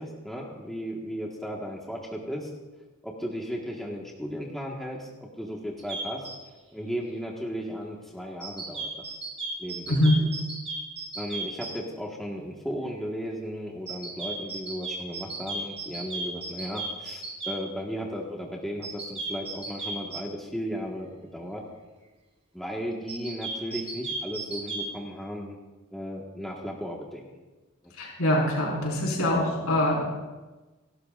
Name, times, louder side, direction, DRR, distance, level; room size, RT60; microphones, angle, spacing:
voice 1, 0.0-2.5 3.0-5.1 5.4-6.3 6.7-9.1 9.6-10.3 11.1-21.1 21.3-21.6 22.5-25.6 25.9-27.2 27.8-27.9, equal, ahead, -3 dB, 1.5 m, -35 dB
sound 1, 5.8-6.4 8.4-11.7 13.9-17.6 18.8-20.2 23.1-24.8, right 3 dB, 30° right, 4.5 m, -34 dB
voice 2, 9.9-10.2 28.0-30.1, left 1 dB, 85° left, -4 dB, 4.7 m, -24 dB
29.0 x 12.5 x 2.5 m, 1.2 s
head